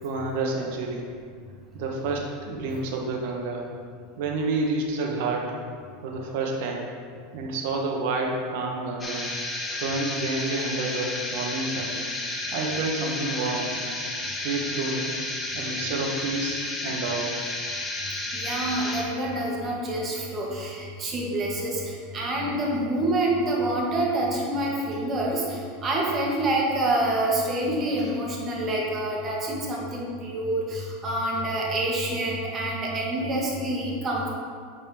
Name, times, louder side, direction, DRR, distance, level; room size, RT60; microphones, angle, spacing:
voice 1, 0.0-1.1 1.7-3.7 4.2-5.5 6.0-6.9 7.3-9.3 9.7-12.0 12.5-13.7 14.2-15.1 15.5-17.4, right 3 dB, 70° right, 0 dB, 1.2 m, -29 dB
sound 1, 9.0-19.0, left 2 dB, 20° left, 1.1 m, -32 dB
voice 2, 18.3-34.3, right 1 dB, 30° right, -3 dB, 1.6 m, -27 dB
8.8 x 4.2 x 3.7 m, 2.1 s
supercardioid pair, 120°, 0 cm